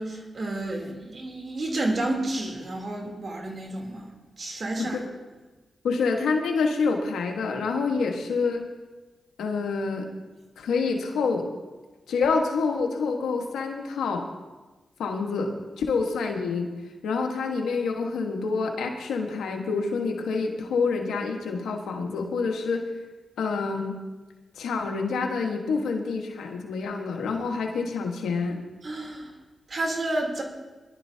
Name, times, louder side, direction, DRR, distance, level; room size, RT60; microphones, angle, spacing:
voice 1, 0.0-4.0 4.4-5.0 28.8-29.3 29.7-30.4, right 2 dB, 55° right, 0 dB, 3.3 m, -30 dB
voice 2, 5.8-8.7 9.4-10.1 10.6-11.5 12.1-14.3 15.0-16.7 17.0-22.9 23.4-24.0 24.6-28.6, left 4 dB, 90° left, 2 dB, 1.4 m, -27 dB
22.0 x 11.5 x 2.8 m, 1.2 s
cardioid pair, 50°, 0 cm